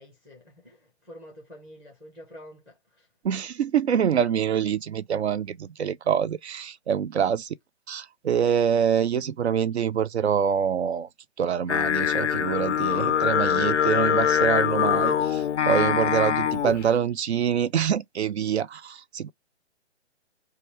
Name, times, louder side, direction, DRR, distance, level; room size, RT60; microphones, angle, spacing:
voice 1, 0.0-3.1 7.2-7.3, equal, 5° right, 0.5 m, -48 dB
voice 2, 3.2-7.5 7.9-11.1 11.4-19.3, right 8 dB, 70° right, 0.5 m, -25 dB
Singing, 11.7-16.9, left 9 dB, 85° left, 0.5 m, -23 dB
3.0 x 2.3 x 2.9 m
figure-of-eight pair, 130°, 34 cm